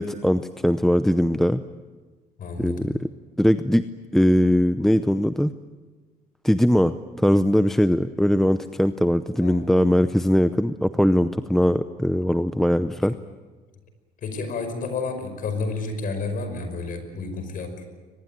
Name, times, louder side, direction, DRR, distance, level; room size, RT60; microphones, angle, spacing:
voice 1, 0.0-1.6 2.6-3.1 3.4-3.8 4.1-5.5 6.4-13.1, equal, ahead, 11 dB, 0.7 m, -20 dB
voice 2, 2.4-3.0 9.4-9.7 14.2-17.8, left 3 dB, 55° left, 8 dB, 5.5 m, -30 dB
23.0 x 21.0 x 9.3 m, 1.3 s
cardioid pair, 110°, 17 cm